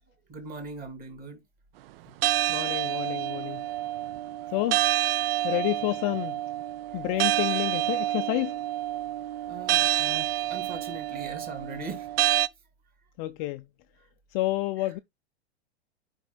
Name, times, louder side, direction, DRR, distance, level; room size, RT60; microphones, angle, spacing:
voice 1, 0.3-1.4 6.9-7.0 9.3-12.2, right 4 dB, 25° right, 2.6 m, -40 dB
sound 1, 2.2-12.5, right 14 dB, 60° right, 0.5 m, -28 dB
voice 2, 2.5-3.6 4.5-4.9 5.4-6.4 6.9-8.6 13.2-13.6 14.3-15.0, left 18 dB, 35° left, 0.4 m, -29 dB
11.5 x 5.3 x 2.2 m
hypercardioid pair, 120°, 34 cm